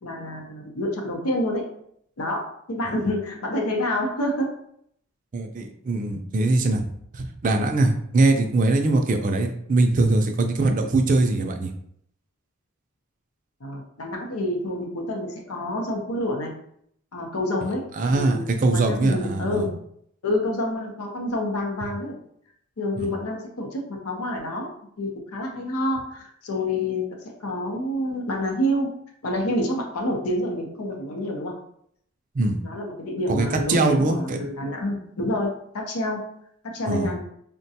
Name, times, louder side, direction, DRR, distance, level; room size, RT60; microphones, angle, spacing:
voice 1, 0.0-1.7 2.2-4.5 13.6-16.5 17.1-17.8 18.1-19.7 20.2-22.2 22.8-24.7 25.0-28.9 29.2-31.5 32.6-36.2 36.7-37.2, left 1 dB, 90° left, 1 dB, 0.7 m, -28 dB
voice 2, 5.3-6.9 7.1-11.7 18.0-19.7 21.8-21.9 23.0-23.1 32.3-32.6 33.3-34.4 36.9-37.1, right 2 dB, 35° right, 4 dB, 0.4 m, -22 dB
3.6 x 2.2 x 2.7 m, 0.68 s
head